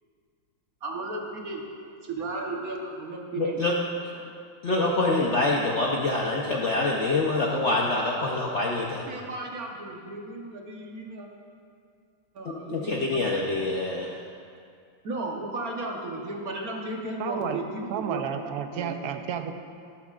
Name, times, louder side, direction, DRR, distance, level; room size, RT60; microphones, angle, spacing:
voice 1, 0.8-1.6 2.0-3.6 4.1-4.3 9.1-11.3 12.3-13.3 15.0-17.6 17.9-18.3 18.7-19.0, right 2 dB, 55° right, 0 dB, 1.4 m, -35 dB
voice 2, 3.4-3.7 4.6-9.0 12.4-14.1, left 2 dB, 60° left, -2 dB, 0.7 m, -25 dB
voice 3, 17.2-17.6 17.9-19.5, right 8 dB, 70° right, 7 dB, 1.0 m, -31 dB
13.0 x 12.0 x 2.4 m, 2.3 s
omnidirectional pair, 2.1 m